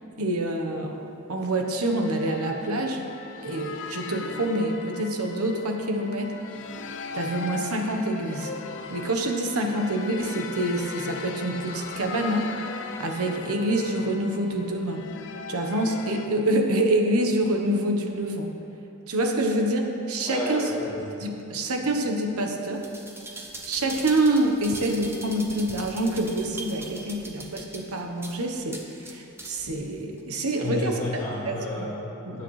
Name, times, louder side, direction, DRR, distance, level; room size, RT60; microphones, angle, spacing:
voice 1, 0.2-1.0 1.3-3.1 3.4-6.3 7.1-8.5 8.9-12.5 13.0-15.0 15.5-18.5 19.1-20.6 21.2-22.9 23.6-31.0 31.4-31.9 32.2-32.4, right 1 dB, 85° right, 3 dB, 1.1 m, -26 dB
sound 1, 1.7-16.3, left 5 dB, 60° left, 0.6 m, -38 dB
voice 2, 20.2-21.1 30.6-32.4, left 1 dB, 15° left, -11 dB, 2.7 m, -31 dB
sound 2, 22.7-29.7 30.2-30.3, right 2 dB, 10° right, 0.8 m, -41 dB
16.5 x 9.0 x 3.2 m, 2.8 s
head